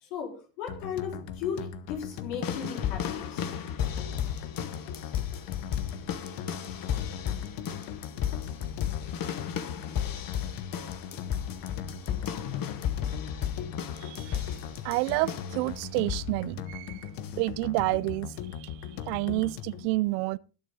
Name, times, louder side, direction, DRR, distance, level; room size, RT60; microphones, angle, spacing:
voice 1, 0.0-3.5, left 7 dB, 90° left, 4.7 m, -36 dB
sound 1, 0.7-19.9, left 8 dB, 70° left, 1.5 m, -39 dB
sound 2, 2.4-15.6 16.1-16.4 17.2-17.3, left 9 dB, 45° left, 1.5 m, -34 dB
voice 2, 14.0-14.5 14.8-17.1 17.4-20.4, right 21 dB, 80° right, 0.7 m, -30 dB
21.0 x 7.5 x 3.8 m
supercardioid pair, 85°, 48 cm